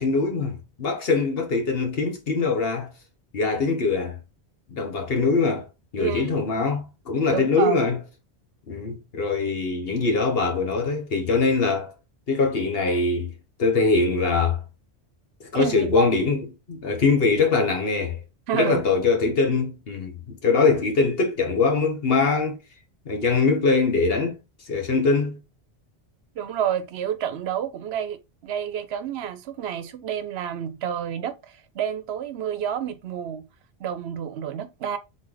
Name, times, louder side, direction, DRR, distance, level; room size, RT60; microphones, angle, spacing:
voice 1, 0.0-2.9 3.3-4.2 4.7-5.7 5.9-8.0 8.7-11.9 12.3-13.3 13.6-14.6 15.5-16.4 16.7-18.2 18.5-22.6 23.0-24.4 24.7-25.4, left 4 dB, 60° left, 1.4 m, -22 dB
voice 2, 6.0-6.3 7.3-7.8 15.5-16.1 18.5-18.8 26.4-33.5 33.8-35.0, right 9 dB, 75° right, 0.8 m, -29 dB
3.9 x 3.2 x 3.8 m
omnidirectional pair, 1.1 m